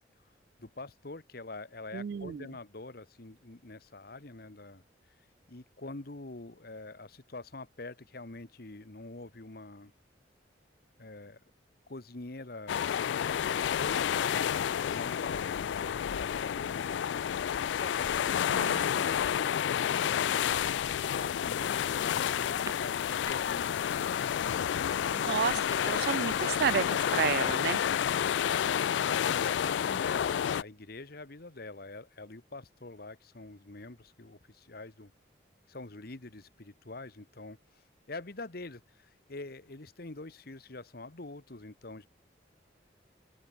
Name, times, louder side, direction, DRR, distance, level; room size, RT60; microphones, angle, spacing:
voice 1, 0.6-4.8 5.5-9.9 11.0-11.4 11.9-14.5 14.9-20.3 20.8-24.3 28.1-35.1 35.7-42.1, left 2 dB, 55° left, 1.3 m, -45 dB
voice 2, 1.9-2.5 18.5-19.0 25.1-27.8, right 8 dB, 60° right, 0.3 m, -32 dB
sound 1, 12.7-30.6, left 9 dB, 80° left, 0.3 m, -30 dB
sound 2, 22.5-23.3 23.7-24.0 24.2-27.8, right 3 dB, 20° right, 1.4 m, -48 dB
open air
head